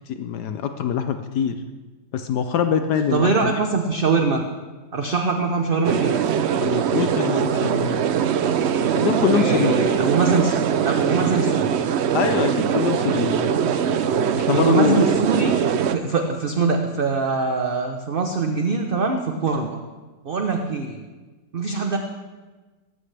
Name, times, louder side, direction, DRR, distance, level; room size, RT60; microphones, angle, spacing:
voice 1, 0.0-1.6 2.1-3.5 6.6-8.0 9.0-9.7 12.1-13.5 14.4-15.0, left 8 dB, 75° left, 8 dB, 1.2 m, -24 dB
voice 2, 3.1-4.4 4.9-6.2 9.3-10.5 10.8-11.7 14.5-15.5 15.9-19.8 20.2-21.0 21.5-22.0, right 4 dB, 45° right, 4 dB, 0.7 m, -22 dB
sound 1, 5.8-15.9, right 8 dB, 85° right, 0.5 m, -22 dB
18.0 x 14.0 x 3.4 m, 1.3 s
omnidirectional pair, 1.9 m